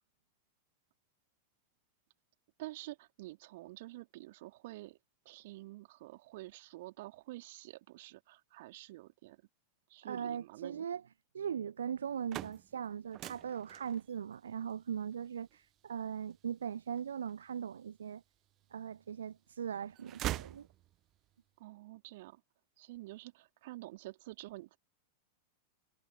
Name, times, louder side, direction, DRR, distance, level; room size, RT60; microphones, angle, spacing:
voice 1, 2.6-5.0 5.3-9.4 9.9-10.9 21.6-22.4 22.8-24.8, right 18 dB, 50° right, 3.5 m, -48 dB
voice 2, 10.0-11.0 11.3-18.2 18.7-20.7, right 8 dB, 65° right, 0.7 m, -39 dB
sound 1, 12.0-18.0 18.5-19.3 19.6-21.2, right 14 dB, 35° right, 0.6 m, -44 dB
figure-of-eight pair, 90°, 0 cm